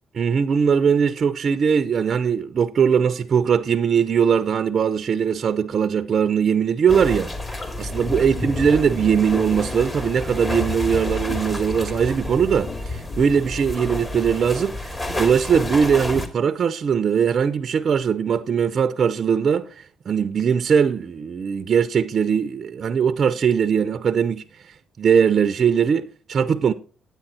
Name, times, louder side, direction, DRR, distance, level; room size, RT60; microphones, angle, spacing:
voice 1, 0.2-7.3 7.8-26.7, right 7 dB, 50° right, 0.5 m, -20 dB
sound 1, 6.9-16.3, left 2 dB, 25° left, 2.2 m, -29 dB
9.9 x 8.4 x 4.2 m
cardioid pair, 90°, 0 cm